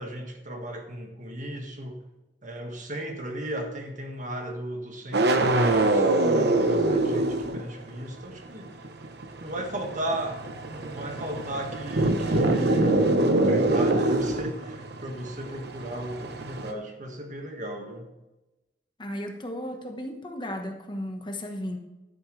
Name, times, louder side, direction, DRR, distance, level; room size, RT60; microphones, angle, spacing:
voice 1, 0.0-2.0 2.4-8.7 9.4-10.4 10.7-18.1, right 1 dB, 45° right, 3 dB, 1.7 m, -35 dB
sound 1, 5.1-8.0 8.2-16.7, right 2 dB, 65° right, 1.0 m, -24 dB
voice 2, 19.0-21.8, left 1 dB, 25° left, 3 dB, 1.2 m, -35 dB
11.0 x 10.0 x 3.3 m, 1.0 s
head